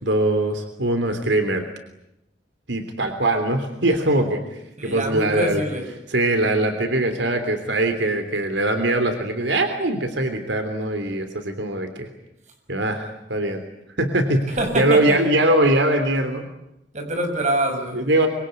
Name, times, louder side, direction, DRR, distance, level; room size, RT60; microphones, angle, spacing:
voice 1, 0.0-1.6 2.7-5.6 6.1-12.1 12.7-13.6 14.0-16.5 17.9-18.3, right 1 dB, 85° right, 7 dB, 3.3 m, -22 dB
voice 2, 4.8-5.9 14.5-15.2 16.9-18.1, right 1 dB, 45° right, 4 dB, 6.4 m, -25 dB
25.5 x 24.5 x 9.5 m, 0.84 s
head